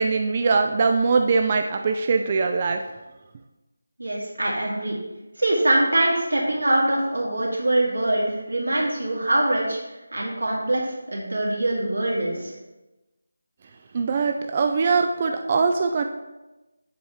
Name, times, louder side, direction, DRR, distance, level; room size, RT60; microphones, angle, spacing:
voice 1, 0.0-2.8 13.9-16.0, right 4 dB, 30° right, 5 dB, 0.3 m, -22 dB
voice 2, 4.0-5.0 5.4-12.5, right 1 dB, 90° right, -3 dB, 2.5 m, -23 dB
7.6 x 4.1 x 4.8 m, 1.1 s
figure-of-eight pair, 170°, 0 cm